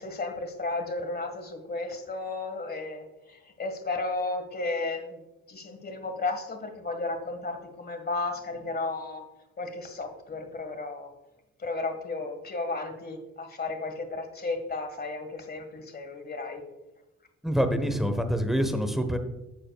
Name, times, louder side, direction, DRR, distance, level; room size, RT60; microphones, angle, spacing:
voice 1, 0.0-5.2 5.5-9.2 9.6-11.1 11.6-16.6, left 3 dB, 30° left, 6 dB, 1.7 m, -33 dB
voice 2, 17.4-19.2, equal, ahead, 8 dB, 1.2 m, -26 dB
11.5 x 7.5 x 2.4 m, 0.98 s
cardioid pair, 90°, 30 cm